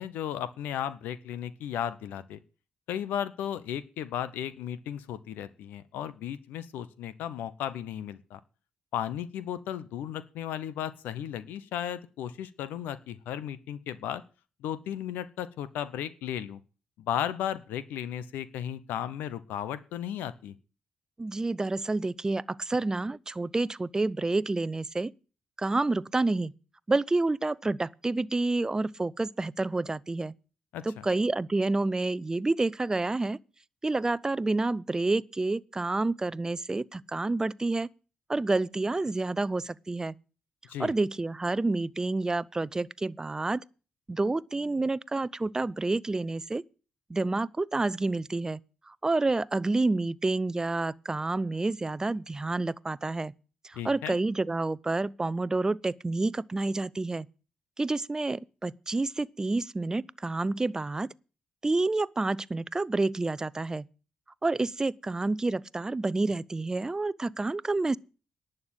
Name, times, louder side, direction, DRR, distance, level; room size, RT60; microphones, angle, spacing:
voice 1, 0.0-2.4 2.9-8.4 8.9-14.2 14.6-16.6 17.0-20.5 30.7-31.1 40.7-40.9 53.7-54.2, left 10 dB, 85° left, 0.7 m, -35 dB
voice 2, 21.2-25.1 25.6-26.5 26.9-30.3 30.8-33.4 33.8-37.9 38.3-40.1 40.8-43.6 44.1-46.6 47.1-48.6 48.9-53.3 53.6-57.2 57.8-61.1 61.6-63.9 64.4-68.0, right 2 dB, 20° right, 0.6 m, -29 dB
11.5 x 6.6 x 8.9 m
cardioid pair, 65°, 3 cm